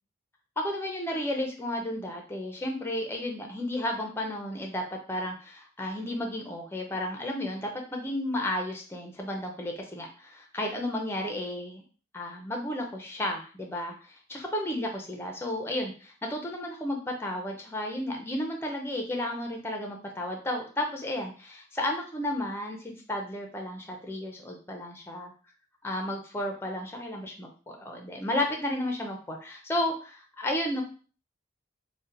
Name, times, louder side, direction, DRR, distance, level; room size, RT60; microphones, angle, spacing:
voice 1, 0.6-11.8 12.1-25.3 25.8-30.8, left 1 dB, 15° left, 2 dB, 0.5 m, -33 dB
2.7 x 2.1 x 3.8 m, 0.39 s
head